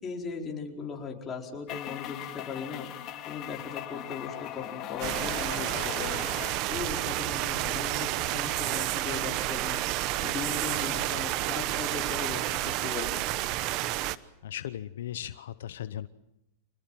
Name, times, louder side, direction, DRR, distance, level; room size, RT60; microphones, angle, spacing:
voice 1, 0.0-2.9 3.2-9.8 10.2-13.2, left 5 dB, 25° left, 0 dB, 4.9 m, -38 dB
sound 1, 1.7-6.6, left 12 dB, 40° left, 2.8 m, -39 dB
sound 2, 5.0-14.2, right 16 dB, 50° right, 1.0 m, -30 dB
voice 2, 14.4-16.1, left 11 dB, 80° left, 13 dB, 0.8 m, -37 dB
27.0 x 20.0 x 7.6 m, 0.83 s
hypercardioid pair, 125°, 0 cm